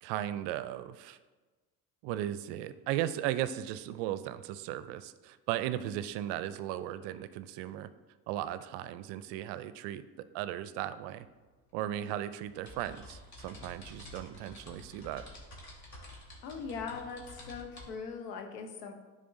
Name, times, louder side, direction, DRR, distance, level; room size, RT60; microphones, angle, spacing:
voice 1, 0.0-1.2 2.0-7.9 8.3-10.0 10.3-11.3 11.7-15.2, right 12 dB, 65° right, 13 dB, 0.5 m, -36 dB
sound 1, 11.2-11.3 11.6-17.9, left 1 dB, 40° left, 1.8 m, -50 dB
voice 2, 16.4-18.9, left 5 dB, 85° left, 4 dB, 0.9 m, -40 dB
10.0 x 3.7 x 2.6 m, 1.3 s
hypercardioid pair, 65°, 45 cm